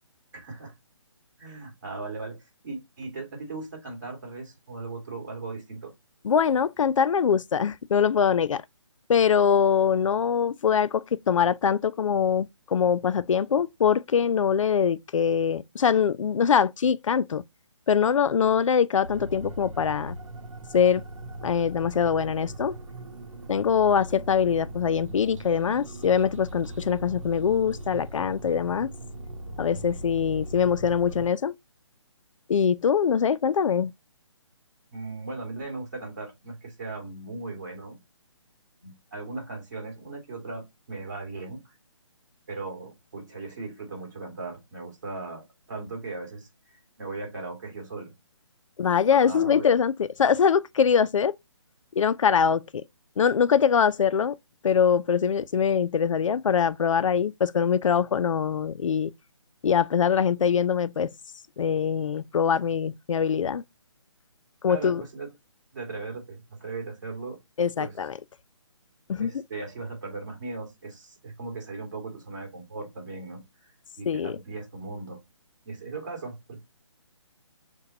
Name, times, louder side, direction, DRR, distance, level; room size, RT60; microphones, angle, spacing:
voice 1, 0.3-0.7 1.4-5.9 34.9-38.0 38.8-41.7 42.5-46.5 47.0-48.1 49.1-49.7 64.7-65.3 65.7-67.4 67.8-68.0 69.2-73.7 74.0-75.2 75.7-76.6, right 3 dB, 40° right, 2.0 m, -38 dB
voice 2, 6.2-8.6 9.1-17.4 17.9-20.2 20.7-21.0 21.4-22.8 23.5-28.9 29.6-31.5 32.5-33.9 48.8-51.4 52.0-52.8 53.2-54.4 54.6-59.1 59.6-61.1 61.6-63.6 64.6-65.0 67.6-68.1 69.1-69.4 74.1-74.4, left 7 dB, 80° left, 0.4 m, -23 dB
sound 1, 19.0-31.3, right 1 dB, 85° right, 0.9 m, -39 dB
6.5 x 2.2 x 2.8 m
hypercardioid pair, 170°, 16 cm